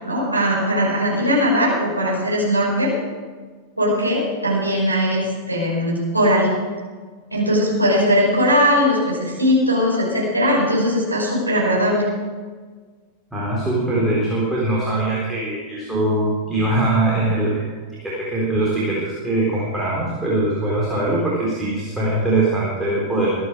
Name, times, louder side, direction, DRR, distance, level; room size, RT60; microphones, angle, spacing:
voice 1, 0.0-2.9 3.8-6.5 7.3-12.0, equal, 85° right, -5 dB, 5.6 m, -19 dB
voice 2, 13.3-17.6 18.0-23.3, right 2 dB, 5° right, -6 dB, 4.1 m, -22 dB
23.5 x 9.6 x 4.9 m, 1.5 s
figure-of-eight pair, 90°, 0 cm